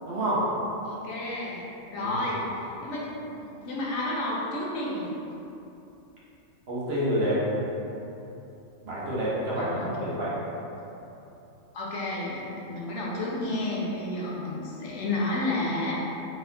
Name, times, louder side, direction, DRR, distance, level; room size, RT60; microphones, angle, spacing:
voice 1, 0.1-0.4 2.0-2.1 6.7-7.4 8.8-10.3, equal, 50° right, -8 dB, 1.2 m, -28 dB
voice 2, 0.8-1.6 1.9-5.1 9.6-9.9 11.7-15.9, left 1 dB, 65° left, -5 dB, 1.0 m, -31 dB
3.9 x 3.6 x 2.7 m, 2.9 s
omnidirectional pair, 1.4 m